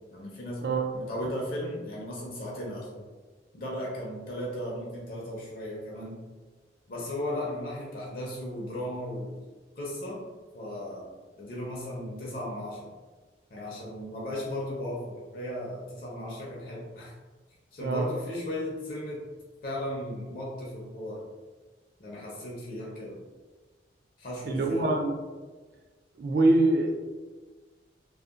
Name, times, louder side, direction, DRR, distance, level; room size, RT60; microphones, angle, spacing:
voice 1, 0.1-3.0 3.5-6.2 6.9-9.3 9.8-10.2 10.5-11.1 11.4-12.9 13.5-17.1 17.7-19.2 19.6-21.2 22.0-23.2 24.2-24.9, left 1 dB, 50° left, -4 dB, 0.5 m, -36 dB
voice 2, 24.4-25.2 26.2-26.9, right 2 dB, 55° right, 2 dB, 0.3 m, -24 dB
2.7 x 2.0 x 2.4 m, 1.3 s
head